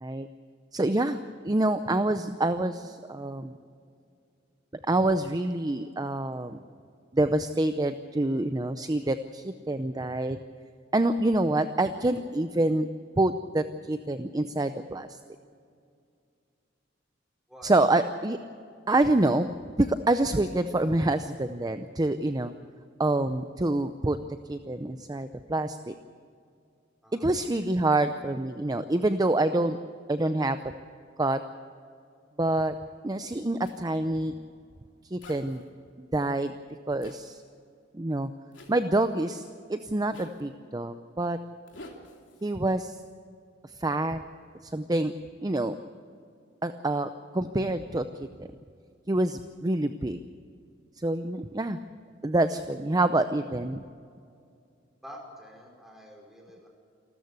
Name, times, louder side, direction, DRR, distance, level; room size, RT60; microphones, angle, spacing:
voice 1, 0.7-1.2 1.4-3.5 4.9-6.6 7.1-10.4 10.9-12.9 13.2-15.2 17.6-18.4 18.9-19.5 19.8-22.5 23.0-24.2 24.5-25.9 27.1-29.8 30.1-30.6 31.2-31.4 32.4-32.7 33.0-34.3 35.1-35.6 36.0-36.5 36.9-37.4 37.9-38.3 38.7-39.4 39.7-41.4 42.4-43.0 43.8-44.2 44.6-45.1 45.4-45.7 46.6-48.5 49.1-50.2 51.0-51.8 52.2-53.8, right 2 dB, 20° right, 10 dB, 0.6 m, -26 dB
Zipper (clothing), 33.6-33.8 35.2-35.6 37.0-37.2 38.5-38.8 40.1-40.4 41.7-42.6, left 2 dB, 75° left, 3.1 m, -48 dB
voice 2, 55.0-56.7, equal, ahead, 0 dB, 5.0 m, -47 dB
28.0 x 13.5 x 8.2 m, 2.3 s
head